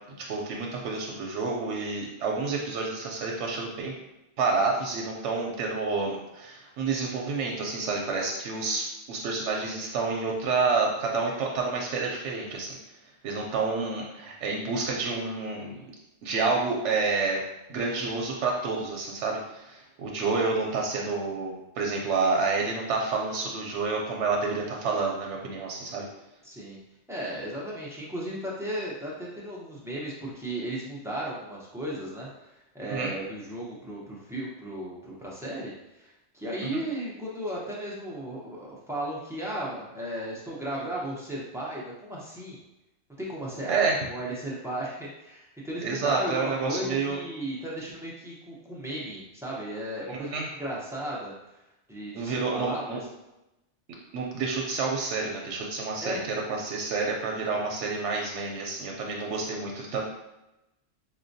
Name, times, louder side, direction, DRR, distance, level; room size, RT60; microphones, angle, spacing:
voice 1, 0.3-3.9 4.4-12.8 13.2-15.8 16.2-17.4 17.7-26.1 32.8-33.1 36.7-36.8 43.7-44.0 45.8-47.2 50.1-50.5 52.1-53.0 54.1-56.2 56.5-60.1, right 4 dB, 90° right, -1 dB, 0.9 m, -29 dB
voice 2, 26.4-26.8 27.1-35.7 36.0-42.6 43.2-51.3 51.9-53.0 56.0-56.2, right 1 dB, 5° right, -6 dB, 0.4 m, -35 dB
4.4 x 2.1 x 2.6 m, 0.94 s
omnidirectional pair, 1.2 m